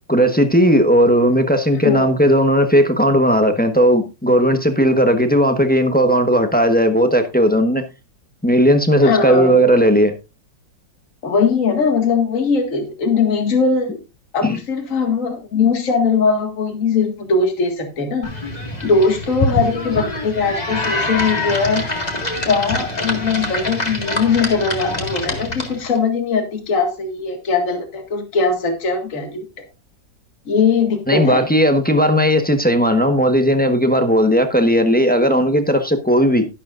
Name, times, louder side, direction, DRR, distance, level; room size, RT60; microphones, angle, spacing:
voice 1, 0.1-7.8 8.4-10.1 14.4-14.5 31.1-36.5, equal, 5° left, 0.9 m, -15 dB
voice 2, 9.0-9.5 11.2-14.0 14.3-18.3 18.8-21.8 22.5-29.5 30.5-31.5, left 4 dB, 45° left, 2.2 m, -20 dB
sound 1, 18.2-26.0, left 2 dB, 25° left, 2.0 m, -25 dB
12.0 x 11.5 x 2.5 m
omnidirectional pair, 2.0 m